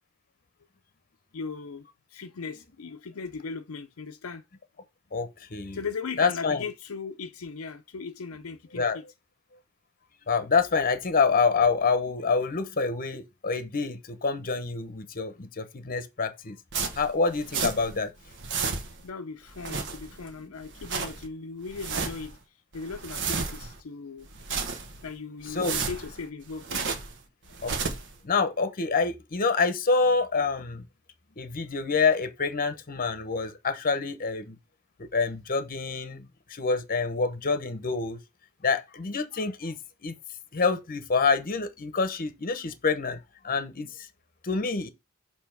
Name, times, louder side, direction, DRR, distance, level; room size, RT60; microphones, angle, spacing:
voice 1, 1.3-4.4 5.7-9.0 19.0-22.4 22.7-24.3 25.0-26.8, left 5 dB, 75° left, 0.6 m, -38 dB
voice 2, 5.1-5.8 6.2-6.6 8.7-9.0 10.3-16.6 16.9-18.1 25.5-25.8 27.6-28.0 28.2-30.9 31.4-34.6 35.0-38.2 38.6-39.8 40.0-40.1 40.5-44.1 44.4-44.9, left 4 dB, 45° left, 0.9 m, -27 dB
sound 1, 16.7-18.0 18.3-19.1 19.5-20.3 20.6-21.3 21.7-22.3 22.7-23.8 24.2-25.1 25.5-27.2 27.5-28.1, right 5 dB, 60° right, 1.0 m, -32 dB
6.8 x 3.0 x 5.9 m
head